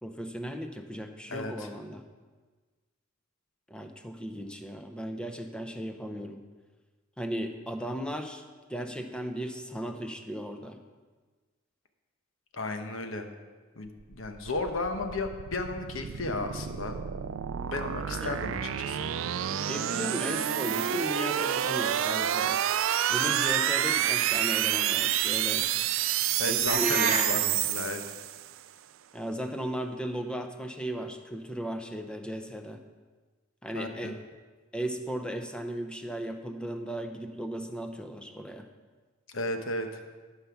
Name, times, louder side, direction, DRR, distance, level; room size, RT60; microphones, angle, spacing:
voice 1, 0.0-2.0 3.7-6.4 7.2-8.4 8.7-10.8 18.2-18.3 19.6-22.6 23.1-25.6 26.4-27.4 29.1-32.8 33.6-34.2 34.7-38.6, equal, 5° left, 6 dB, 0.7 m, -36 dB
voice 2, 1.3-1.7 12.5-13.3 13.8-17.0 17.6-19.1 26.4-28.0 33.7-34.2 39.3-40.0, left 2 dB, 70° left, 6 dB, 1.0 m, -34 dB
sound 1, 14.0-28.6, right 11 dB, 65° right, 0.4 m, -29 dB
sound 2, 26.7-27.3, right 4 dB, 35° right, 1.3 m, -28 dB
13.0 x 5.7 x 5.8 m, 1.4 s
head